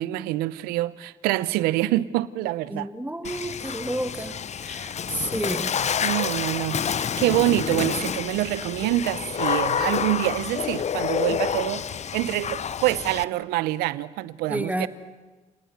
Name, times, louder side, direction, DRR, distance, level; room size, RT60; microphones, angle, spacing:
voice 1, 0.0-2.9 3.2-3.5 6.0-14.9, right 16 dB, 80° right, 0.7 m, -26 dB
voice 2, 2.7-5.7 11.3-11.4 14.5-14.9, right 1 dB, 10° right, 2.0 m, -31 dB
Water / Splash splatter, 3.2-13.2, left 7 dB, 45° left, 0.7 m, -28 dB
29.5 x 19.5 x 8.0 m
hypercardioid pair, 50°, 16 cm